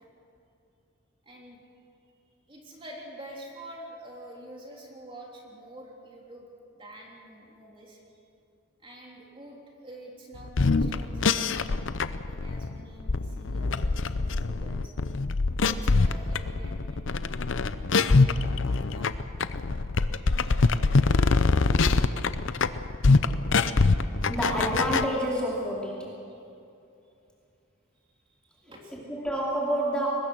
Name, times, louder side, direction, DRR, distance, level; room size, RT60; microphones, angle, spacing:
voice 1, 1.2-1.6 2.5-6.5 6.7-8.0 8.8-11.9 12.3-14.9 15.6-17.2 18.9-19.1 20.2-21.1 28.4-28.9, right 1 dB, 25° right, -2 dB, 3.2 m, -47 dB
sound 1, 10.5-25.1, left 3 dB, 60° left, 0.7 m, -24 dB
voice 2, 24.3-26.2 28.9-30.1, right 1 dB, 5° left, -4 dB, 2.6 m, -29 dB
22.5 x 20.5 x 6.2 m, 2.7 s
head